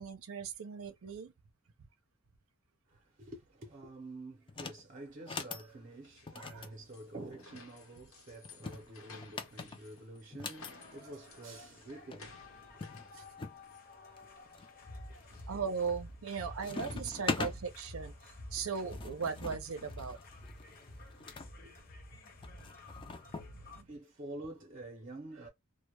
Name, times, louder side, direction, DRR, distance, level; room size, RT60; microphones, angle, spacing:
voice 1, 0.0-1.3 6.4-6.7 13.1-13.2 15.5-20.2 23.3-23.9, right 6 dB, 85° right, 0.5 m, -38 dB
voice 2, 2.9-13.3 15.1-15.5 16.3-17.4 18.6-18.7 20.5-20.7 21.6-21.9 23.6-25.5, right 2 dB, 40° right, 0.6 m, -49 dB
sound 1, 4.5-4.8 5.2-5.7 6.3-7.6 8.4-10.7 11.8-11.9 12.1-12.2 12.8-13.6 14.2-14.7 15.2-15.6 15.9-16.3 16.6-17.6 18.5-21.5 22.4-23.5, left 3 dB, 25° left, 0.4 m, -42 dB
sound 2, 5.7-16.1, left 3 dB, 85° left, 0.8 m, -58 dB
sound 3, 10.6-23.8, left 1 dB, 45° left, 0.7 m, -50 dB
2.2 x 2.1 x 2.9 m
head